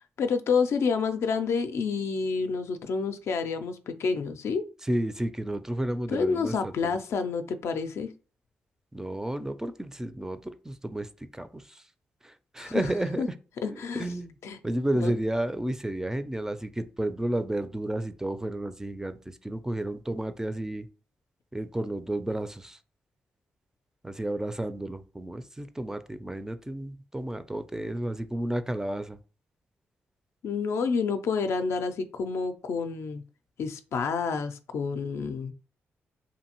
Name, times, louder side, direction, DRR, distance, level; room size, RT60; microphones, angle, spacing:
voice 1, 0.2-4.6 6.1-8.1 12.6-12.8 13.2-13.3 13.6-14.1 14.4-14.6 15.0-15.1 30.4-33.2 33.6-35.5, left 5 dB, 70° left, 0.3 m, -29 dB
voice 2, 4.8-7.0 8.9-11.8 12.2-13.3 13.6-14.4 14.6-20.9 21.5-22.8 24.0-29.2, right 1 dB, 10° right, 0.3 m, -32 dB
2.6 x 2.5 x 2.8 m
supercardioid pair, 50°, 5 cm